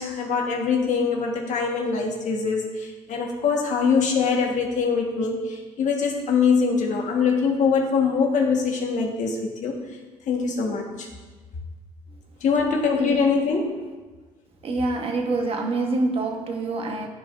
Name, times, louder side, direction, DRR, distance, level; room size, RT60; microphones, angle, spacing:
voice 1, 0.0-9.8 10.3-11.1 12.4-13.7, left 5 dB, 60° left, 1.5 m, -23 dB
voice 2, 14.6-17.1, right 2 dB, 40° right, 1.2 m, -26 dB
13.0 x 4.8 x 2.6 m
cardioid pair, 100°, 14 cm